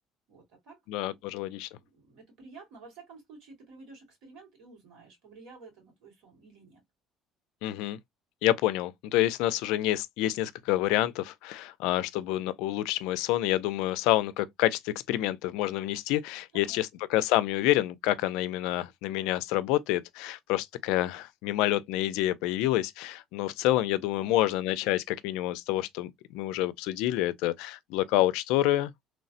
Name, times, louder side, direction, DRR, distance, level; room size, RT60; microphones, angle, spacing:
voice 1, 0.3-1.3 1.8-6.8 16.5-16.8 24.1-24.6, right 4 dB, 70° right, 2.0 m, -52 dB
voice 2, 0.9-1.7 7.6-8.0 8.4-28.9, left 15 dB, 85° left, 0.3 m, -28 dB
3.1 x 2.0 x 2.6 m
cardioid pair, 150°, 0 cm